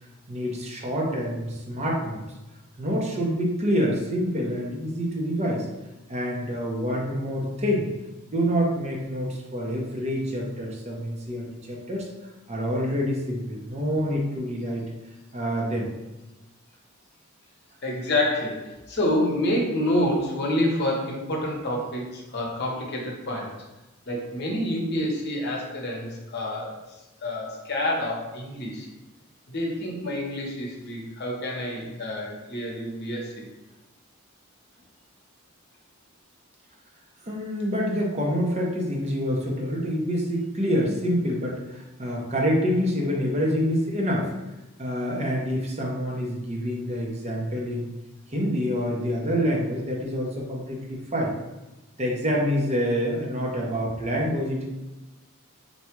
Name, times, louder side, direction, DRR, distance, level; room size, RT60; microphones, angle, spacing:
voice 1, 0.3-2.2 2.8-5.7 6.1-7.9 8.3-12.1 12.5-14.8 15.3-15.9 37.2-44.3 44.8-47.9 48.3-51.4 52.0-54.7, equal, 30° right, -2 dB, 0.7 m, -27 dB
voice 2, 17.8-23.6 24.1-26.8 27.2-28.9 29.5-33.4, left 1 dB, 50° left, -1 dB, 0.9 m, -28 dB
4.1 x 2.3 x 4.5 m, 1.0 s
head